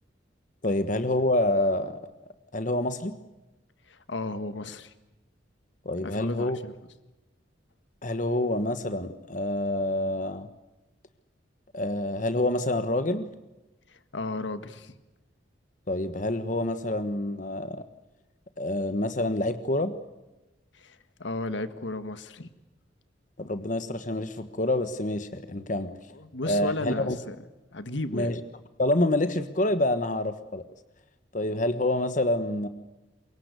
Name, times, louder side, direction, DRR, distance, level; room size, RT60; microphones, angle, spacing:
voice 1, 0.6-2.0 2.5-3.2 5.8-6.6 8.0-10.5 11.7-13.3 15.9-17.8 18.6-19.9 23.4-25.9 26.5-27.2 28.1-28.4 28.8-30.6 31.3-32.7, left 1 dB, 40° left, 11 dB, 1.3 m, -27 dB
voice 2, 3.9-4.9 6.0-6.7 13.9-14.9 20.7-22.5 26.1-27.4 27.7-28.3, left 2 dB, 75° left, 12 dB, 1.6 m, -34 dB
24.5 x 22.0 x 8.2 m, 1.0 s
head